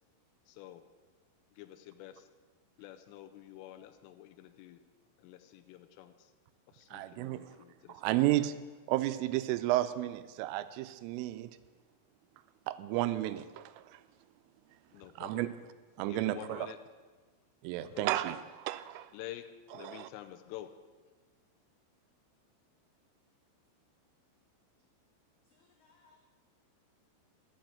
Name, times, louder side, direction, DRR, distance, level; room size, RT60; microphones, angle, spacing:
voice 1, 0.5-0.8 1.5-2.3 2.8-4.8 5.2-6.3 6.7-8.3 14.9-15.5 16.0-16.8 17.8-18.1 19.1-19.5 19.7-20.7, left 13 dB, 85° left, 10 dB, 3.2 m, -49 dB
voice 2, 6.9-7.5 7.9-8.6 8.9-11.6 12.7-14.0 15.2-15.5 16.0-16.7 17.6-19.1 19.8-20.1, right 15 dB, 85° right, 12 dB, 3.1 m, -32 dB
voice 3, 25.5-26.2, left 4 dB, 70° left, 2 dB, 2.5 m, -66 dB
11.5 x 7.8 x 8.9 m, 1.4 s
omnidirectional pair, 5.8 m